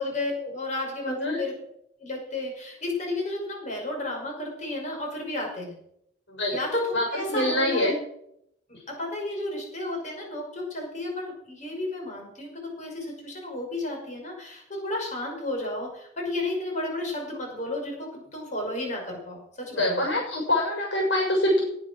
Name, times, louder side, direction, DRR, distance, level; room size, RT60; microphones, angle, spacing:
voice 1, 0.0-1.5 2.0-5.8 6.5-7.9 8.7-20.0, left 2 dB, 40° left, 1 dB, 5.7 m, -32 dB
voice 2, 1.0-1.4 6.3-6.6 6.9-7.9 19.8-21.6, left 1 dB, 90° left, 0 dB, 6.3 m, -25 dB
18.5 x 8.0 x 6.3 m, 0.75 s
head